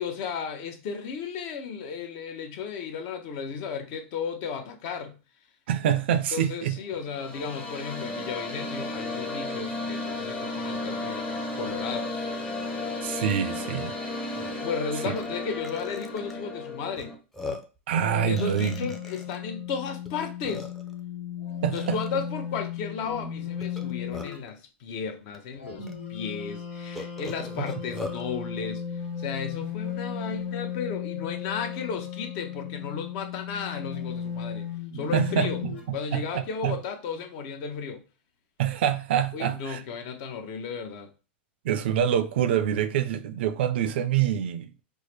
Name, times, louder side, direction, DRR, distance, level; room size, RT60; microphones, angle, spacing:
voice 1, 0.0-5.1 6.3-12.3 14.6-17.1 18.2-20.7 21.7-28.9 29.2-34.7 34.9-35.6 35.9-38.0 39.3-41.1, left 6 dB, 50° left, 0.7 m, -34 dB
voice 2, 5.7-6.8 13.0-14.0 15.1-15.2 17.9-18.9 21.6-22.0 35.1-35.5 35.9-36.8 38.6-39.8 41.6-44.8, right 9 dB, 70° right, 0.5 m, -26 dB
sound 1, 6.9-17.1, left 2 dB, 20° left, 0.9 m, -34 dB
Burping eructation, 13.9-14.0 14.3-14.5 15.2-15.3 15.6-16.3 17.0-17.1 17.3-17.8 18.4-19.4 20.0-20.1 20.4-21.0 21.7-22.1 23.6-24.5 25.3-25.4 25.9-26.0 26.9-28.2, left 2 dB, 5° left, 0.5 m, -39 dB
sound 2, 17.9-24.4 25.6-35.8, left 8 dB, 80° left, 1.2 m, -36 dB
4.6 x 2.1 x 3.2 m
hypercardioid pair, 130°, 6 cm